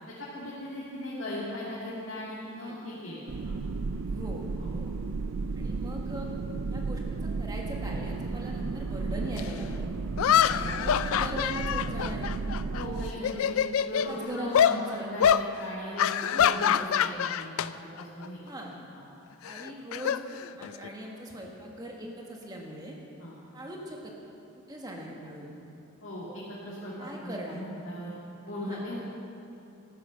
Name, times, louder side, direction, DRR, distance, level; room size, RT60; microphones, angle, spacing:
voice 1, 0.2-3.6 4.6-4.7 10.5-10.8 12.7-13.6 13.9-18.4 18.9-19.0 23.2-23.3 26.0-29.0, left 1 dB, 60° left, -8 dB, 2.3 m, -38 dB
voice 2, 2.6-3.0 4.0-4.4 4.7-4.9 5.5-6.4 6.7-9.9 10.5-12.3 13.0-13.4 14.1-15.1 16.3-16.5 18.4-18.7 19.4-22.9 23.5-24.3 24.7-25.6 27.0-27.6 28.6-28.8, equal, 20° right, -1 dB, 1.6 m, -40 dB
sound 1, 3.3-13.1, right 3 dB, 75° right, 0.5 m, -33 dB
sound 2, 9.4-9.5 10.2-12.8 13.2-14.1 14.5-14.8 15.2-15.5 16.0-17.7 18.0-18.3 19.5-20.9, left 9 dB, 75° left, 0.3 m, -25 dB
13.5 x 9.5 x 6.3 m, 2.9 s
head